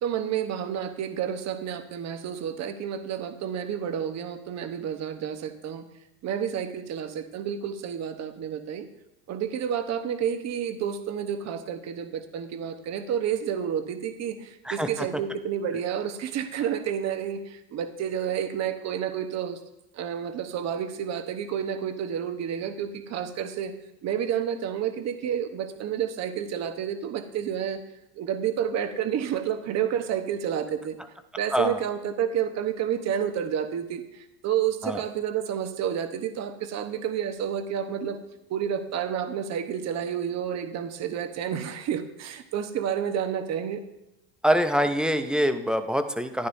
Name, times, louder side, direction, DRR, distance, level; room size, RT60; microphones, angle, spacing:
voice 1, 0.0-5.8 6.2-8.9 9.3-19.6 19.9-23.7 24.0-27.8 28.1-31.0 31.4-38.2 38.5-43.8, right 8 dB, 35° right, 8 dB, 1.0 m, -30 dB
voice 2, 44.4-46.5, equal, ahead, 8 dB, 0.4 m, -24 dB
13.0 x 10.5 x 2.7 m, 0.92 s
supercardioid pair, 115°, 44 cm